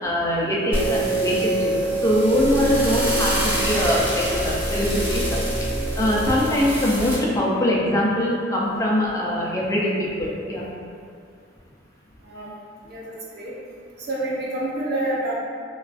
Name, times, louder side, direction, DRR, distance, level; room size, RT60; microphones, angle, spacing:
voice 1, 0.0-5.4 5.7-10.7, left 1 dB, 15° left, -5 dB, 0.3 m, -23 dB
sound 1, 0.7-7.1, right 1 dB, 10° right, 1.2 m, -24 dB
voice 2, 12.2-12.6 12.8-13.5 14.0-15.4, right 1 dB, 55° right, -6 dB, 0.5 m, -28 dB
2.3 x 2.3 x 2.4 m, 2.3 s
head